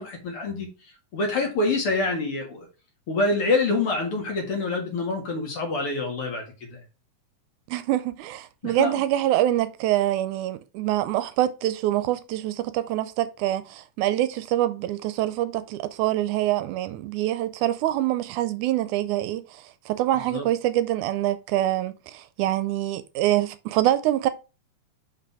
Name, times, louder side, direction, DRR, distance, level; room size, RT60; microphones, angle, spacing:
voice 1, 0.0-2.7 3.1-6.8 8.6-9.0 20.3-20.4, left 3 dB, 50° left, 2.4 m, -26 dB
voice 2, 7.7-24.3, right 13 dB, 80° right, 1.9 m, -25 dB
5.7 x 5.0 x 4.7 m
omnidirectional pair, 3.6 m